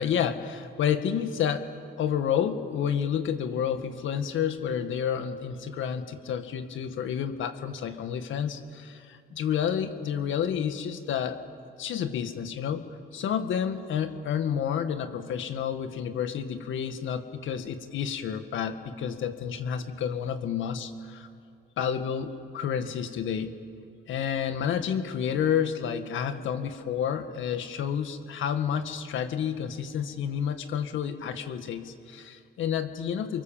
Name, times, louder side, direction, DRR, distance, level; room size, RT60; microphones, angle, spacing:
voice 1, 0.0-1.7 2.0-11.4 11.8-12.9 13.1-21.3 21.8-23.5 24.1-33.4, left 8 dB, 75° left, 8 dB, 1.9 m, -30 dB
29.0 x 24.0 x 7.5 m, 2.4 s
cardioid pair, 90°, 20 cm